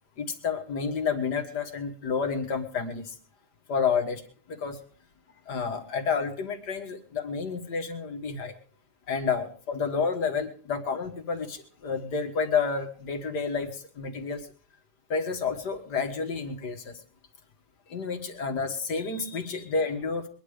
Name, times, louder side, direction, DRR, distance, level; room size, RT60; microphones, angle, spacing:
voice 1, 0.2-3.2 3.7-4.2 4.5-4.8 5.5-8.5 9.1-14.5 15.1-17.0 17.9-20.3, left 5 dB, 75° left, 5 dB, 2.2 m, -30 dB
22.0 x 10.5 x 5.0 m, 0.43 s
omnidirectional pair, 1.8 m